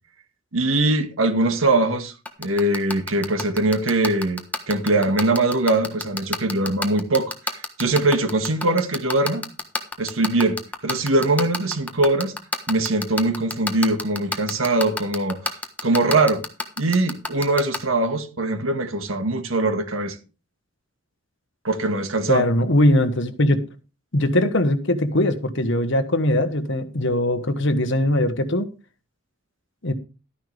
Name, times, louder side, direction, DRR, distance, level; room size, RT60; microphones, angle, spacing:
voice 1, 0.5-2.1 2.4-7.3 7.8-9.4 10.0-10.6 10.8-12.3 12.7-15.6 15.8-16.4 16.8-20.1 21.6-22.5, right 2 dB, 85° right, 1.8 m, -21 dB
sound 1, 2.3-17.8, left 2 dB, 10° left, 1.3 m, -26 dB
voice 2, 22.3-23.6 24.1-28.7 29.8-29.9, left 1 dB, 65° left, 1.4 m, -20 dB
12.5 x 10.0 x 3.4 m
head